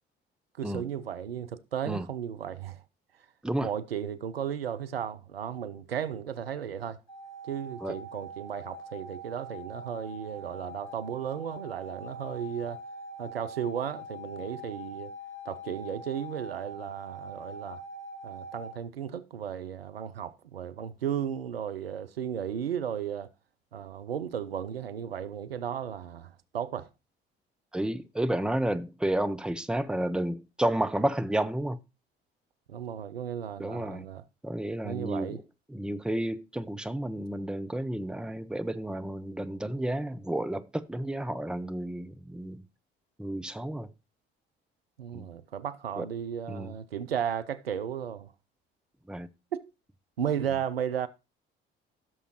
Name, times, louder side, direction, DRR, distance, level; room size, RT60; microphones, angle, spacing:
voice 1, 0.6-2.8 3.6-7.0 7.4-12.8 13.2-15.1 15.5-17.8 18.2-23.3 23.7-26.9 32.7-34.2 34.8-35.4 45.0-48.3 49.5-49.6 50.2-51.1, right 9 dB, 85° right, 0.5 m, -35 dB
sound 1, 7.1-18.7, right 1 dB, 45° left, 6.4 m, -43 dB
voice 2, 27.7-31.8 33.6-34.1 34.4-35.3 35.7-42.7 43.2-43.9 45.1-45.3 46.0-46.1 46.5-46.7 49.1-49.3, right 1 dB, 5° right, 0.8 m, -31 dB
16.5 x 6.7 x 3.0 m
figure-of-eight pair, 55°, 29 cm